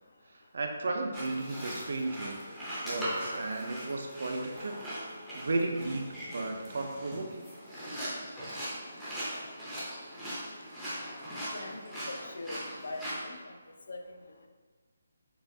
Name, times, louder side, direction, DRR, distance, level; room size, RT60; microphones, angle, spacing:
voice 1, 0.3-2.4 2.8-4.7 5.3-7.4, right 2 dB, 50° right, 3 dB, 0.5 m, -34 dB
sound 1, 1.1-13.2, equal, ahead, 0.6 m, -40 dB
voice 2, 11.5-14.1, left 2 dB, 55° left, 4 dB, 0.5 m, -43 dB
6.7 x 2.5 x 2.6 m, 1.4 s
hypercardioid pair, 180°, 0 cm